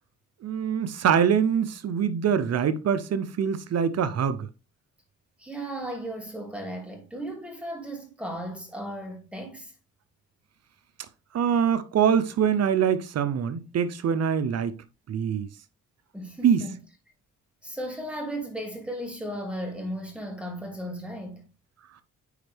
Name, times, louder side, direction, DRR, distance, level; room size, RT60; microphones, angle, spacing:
voice 1, 0.4-4.5 11.3-14.7 15.1-15.5 16.4-16.7, right 7 dB, 55° right, 0.8 m, -24 dB
voice 2, 5.4-9.7 16.1-16.7 17.6-21.4, right 1 dB, 5° right, 2.7 m, -35 dB
9.6 x 4.4 x 3.4 m
cardioid pair, 90°, 30 cm